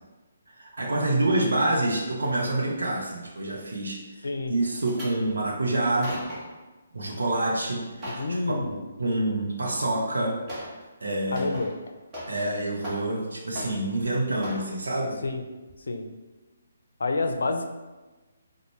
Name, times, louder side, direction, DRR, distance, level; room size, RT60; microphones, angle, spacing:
voice 1, 0.5-6.2 6.9-8.4 9.0-10.4 11.0-11.5 12.3-15.2, right 2 dB, 75° right, -2 dB, 0.6 m, -27 dB
sound 1, 4.6-5.1 5.8-6.6 7.0-7.4 7.7-8.3 9.7-9.8 10.5-10.8 11.1-12.5 12.8-13.3 13.5-14.0 14.4-14.7 15.2-15.4 15.7-15.8, equal, 25° right, 1.2 m, -39 dB
voice 2, 8.1-8.8 11.3-11.7 15.2-15.4 15.9-16.1 17.0-17.7, left 3 dB, 75° left, 6 dB, 0.4 m, -28 dB
3.9 x 2.1 x 3.2 m, 1.2 s
figure-of-eight pair, 145°, 0 cm